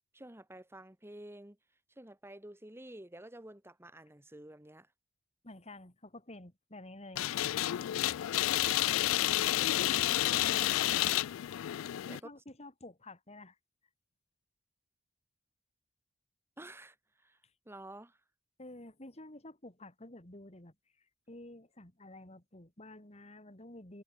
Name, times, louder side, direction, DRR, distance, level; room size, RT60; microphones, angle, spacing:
voice 1, 0.1-1.6 1.9-4.9 10.4-11.1 12.1-12.2 16.6-17.4 17.6-18.2, right 1 dB, 10° right, 1.8 m, -51 dB
voice 2, 5.4-7.3 9.6-10.7 12.0-13.6 18.6-20.7 21.3-24.0, left 1 dB, 30° left, 3.3 m, -50 dB
sound 1, 7.2-12.2, left 14 dB, 85° left, 0.3 m, -30 dB
head